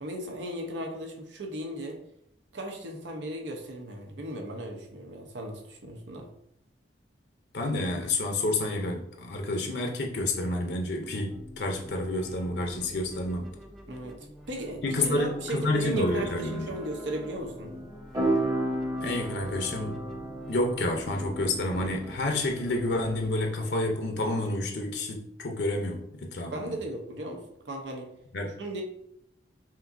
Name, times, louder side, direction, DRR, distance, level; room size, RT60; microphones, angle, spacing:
voice 1, 0.0-2.0 2.5-6.3 13.9-14.1 14.5-17.7 26.5-28.1 28.6-28.8, right 1 dB, 90° right, 3 dB, 0.8 m, -36 dB
voice 2, 7.5-13.5 14.8-16.7 19.0-20.0 20.5-26.8 28.3-28.5, left 2 dB, 70° left, 2 dB, 0.6 m, -29 dB
sound 1, 11.3-23.3, equal, ahead, 0.4 m, -48 dB
sound 2, 14.8-24.5, right 1 dB, 20° right, 0.8 m, -35 dB
5.6 x 2.6 x 2.6 m, 0.76 s
head